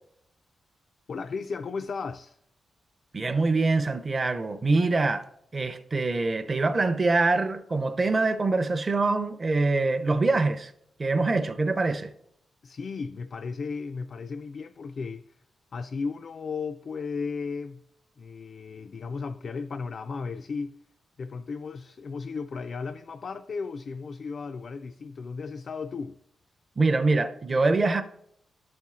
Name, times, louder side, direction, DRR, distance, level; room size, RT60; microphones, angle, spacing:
voice 1, 1.1-2.4 12.6-15.4 15.7-17.8 18.2-20.8 21.2-26.2, left 4 dB, 50° left, 0.3 m, -35 dB
voice 2, 3.1-5.3 5.5-10.7 11.0-12.1 26.8-28.0, right 3 dB, 30° right, 0.5 m, -24 dB
11.0 x 4.3 x 3.6 m
cardioid pair, 115°, 0 cm